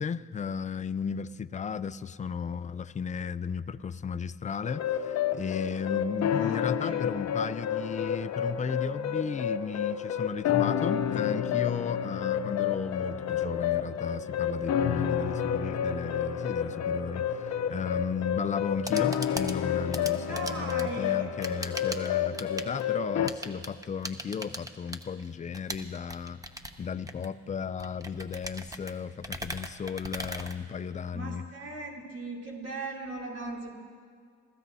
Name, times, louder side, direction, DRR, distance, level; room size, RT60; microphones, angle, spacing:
voice 1, 0.0-26.4 26.8-31.5, left 6 dB, 25° left, 14 dB, 0.4 m, -35 dB
sound 1, 4.6-23.3, left 8 dB, 60° left, 0.7 m, -30 dB
voice 2, 6.3-7.0 20.2-21.3 31.1-33.7, right 3 dB, 55° right, -2 dB, 3.2 m, -39 dB
sound 2, 18.6-31.2, right 1 dB, 10° right, 0.8 m, -41 dB
27.0 x 15.5 x 2.7 m, 2.1 s
cardioid pair, 90°, 30 cm